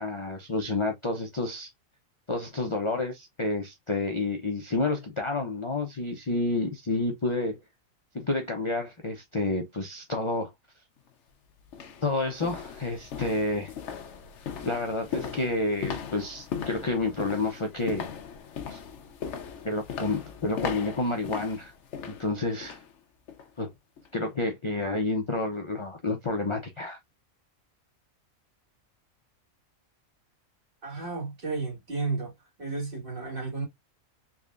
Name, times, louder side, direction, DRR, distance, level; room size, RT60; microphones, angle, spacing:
voice 1, 0.0-1.7 2.3-7.6 8.1-10.5 12.0-13.7 14.6-18.1 18.7-18.8 19.6-21.7 22.1-22.8 23.6-23.7 24.1-27.0, left 2 dB, 35° left, 0.5 m, -29 dB
sound 1, 11.0-11.1 11.7-22.9 23.3-23.5 24.0-24.1, left 7 dB, 60° left, 0.9 m, -38 dB
voice 2, 30.8-32.3 32.6-33.6, right 4 dB, 40° right, 2.0 m, -32 dB
3.8 x 3.2 x 2.4 m
omnidirectional pair, 1.4 m